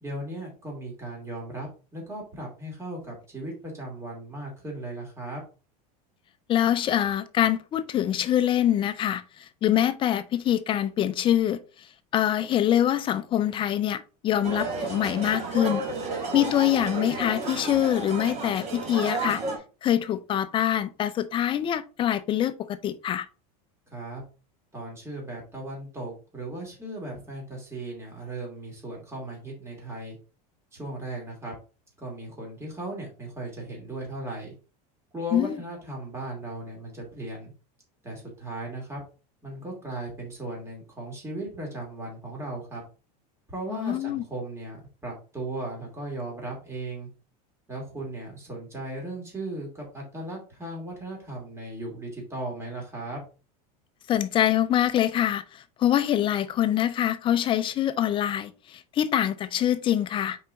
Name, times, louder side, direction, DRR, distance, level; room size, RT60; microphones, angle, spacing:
voice 1, 0.0-5.4 23.9-24.2 24.7-30.1 30.7-31.5 32.0-34.5 35.1-37.5 38.0-39.0 39.4-42.8 43.5-47.1 47.7-53.2, right 2 dB, 15° right, 2.6 m, -37 dB
voice 2, 6.5-11.9 12.1-15.8 16.3-19.4 19.8-23.3 35.3-35.6 43.7-44.2 54.1-60.4, left 11 dB, 25° left, 0.5 m, -25 dB
sound 1, 14.4-19.6, right 3 dB, 35° right, 1.6 m, -32 dB
5.4 x 4.7 x 3.9 m
supercardioid pair, 155°, 20 cm